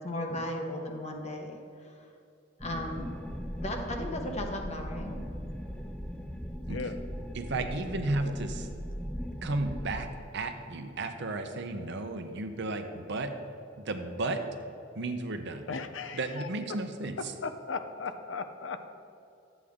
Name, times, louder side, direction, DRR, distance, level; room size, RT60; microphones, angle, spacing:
voice 1, 0.0-1.6 1.8-1.9 2.6-3.1 3.6-5.2, left 1 dB, 35° left, 3 dB, 1.0 m, -35 dB
sound 1, 2.6-9.9, equal, 5° left, 0.5 m, -38 dB
voice 2, 7.3-8.7 9.4-13.3 13.8-14.4 14.9-15.7 16.1-17.4, right 2 dB, 60° right, 6 dB, 0.8 m, -33 dB
voice 3, 15.7-16.5 17.4-18.8, left 4 dB, 70° left, 9 dB, 0.6 m, -37 dB
11.5 x 8.2 x 3.6 m, 2.6 s
head